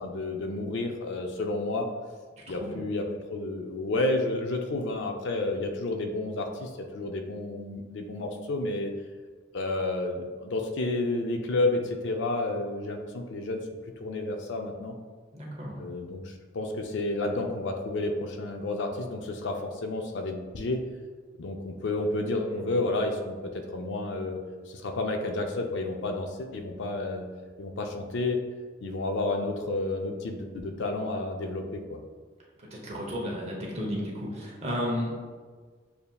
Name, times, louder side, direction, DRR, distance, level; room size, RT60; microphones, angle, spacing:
voice 1, 0.0-1.9 2.5-8.9 9.5-13.6 14.0-14.9 15.8-20.8 21.4-24.4 24.7-27.2 27.6-28.4 28.8-32.0, left 2 dB, 65° left, 4 dB, 0.4 m, -31 dB
voice 2, 15.3-15.8 22.5-22.6 32.6-35.1, equal, 35° right, -2 dB, 0.8 m, -33 dB
6.8 x 2.7 x 2.3 m, 1.5 s
head